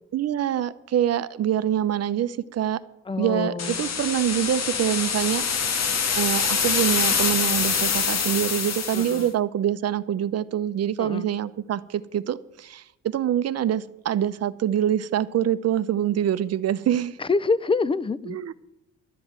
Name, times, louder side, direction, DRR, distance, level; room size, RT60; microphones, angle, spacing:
voice 1, 0.1-2.8 3.2-5.5 5.7-5.8 6.2-17.2 18.2-18.5, right 10 dB, 55° right, 0.7 m, -25 dB
voice 2, 3.1-3.9 8.9-9.3 11.0-11.3 17.2-18.4, left 4 dB, 20° left, 0.6 m, -26 dB
sound 1, 3.6-9.3, left 6 dB, 60° left, 1.8 m, -25 dB
12.0 x 7.9 x 8.8 m
cardioid pair, 90°, 30 cm